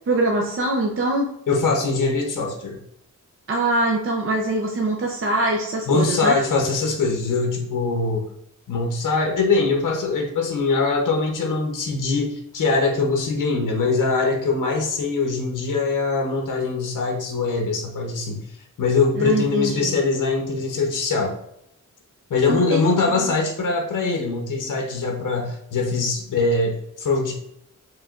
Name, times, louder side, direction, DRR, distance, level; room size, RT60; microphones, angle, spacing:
voice 1, 0.1-1.3 3.5-6.4 19.2-19.9 22.5-23.3, right 2 dB, 40° right, 0 dB, 0.5 m, -23 dB
voice 2, 1.5-2.8 5.9-8.3 8.7-18.4 18.8-21.4 22.3-27.3, left 3 dB, 70° left, 2 dB, 0.8 m, -22 dB
4.8 x 3.2 x 2.4 m, 0.78 s
wide cardioid pair, 165°, 32 cm